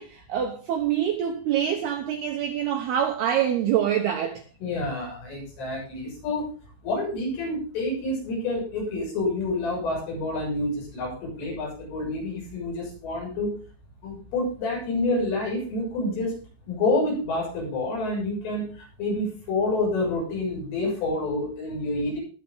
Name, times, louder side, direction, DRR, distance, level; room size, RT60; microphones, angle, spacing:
voice 1, 0.0-4.4, right 9 dB, 80° right, 2.3 m, -25 dB
voice 2, 4.6-6.4 6.8-13.5 14.0-16.3 16.7-22.2, left 2 dB, 70° left, 9.2 m, -28 dB
20.0 x 7.2 x 3.9 m
omnidirectional pair, 5.9 m